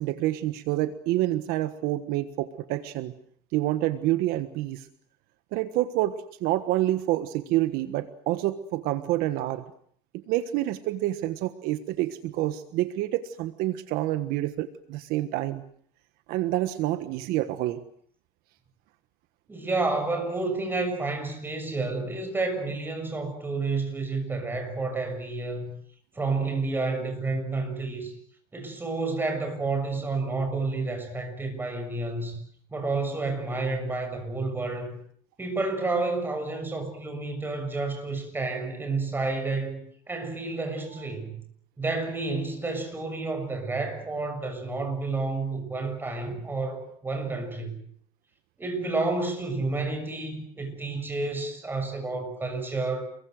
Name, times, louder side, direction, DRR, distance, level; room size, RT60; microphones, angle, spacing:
voice 1, 0.0-3.1 3.5-4.9 5.5-9.6 10.3-15.6 16.3-17.8, right 15 dB, 60° right, 1.4 m, -28 dB
voice 2, 19.5-25.7 26.1-28.1 28.5-32.4 32.7-35.0 35.4-39.8 40.1-41.4 41.8-47.8 48.6-53.0, right 3 dB, 10° right, 6.7 m, -30 dB
28.5 x 22.5 x 7.8 m
cardioid pair, 155°, 17 cm